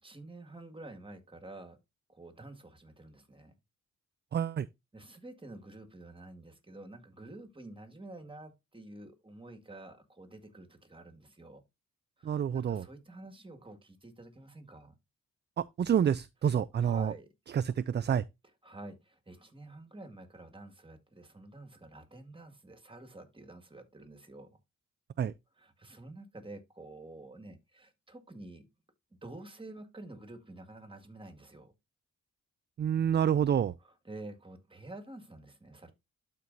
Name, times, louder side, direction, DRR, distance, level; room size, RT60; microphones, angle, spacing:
voice 1, 0.0-1.8 2.1-3.5 4.9-11.6 12.2-15.0 16.8-17.3 18.6-24.6 25.6-28.6 29.2-31.7 33.8-35.9, right 2 dB, 15° right, 1.9 m, -49 dB
voice 2, 4.3-4.7 12.2-12.8 15.6-17.1 17.5-18.2 25.2-25.3 32.8-33.7, right 8 dB, 35° right, 0.4 m, -28 dB
12.0 x 4.6 x 2.6 m
cardioid pair, 75°, 30 cm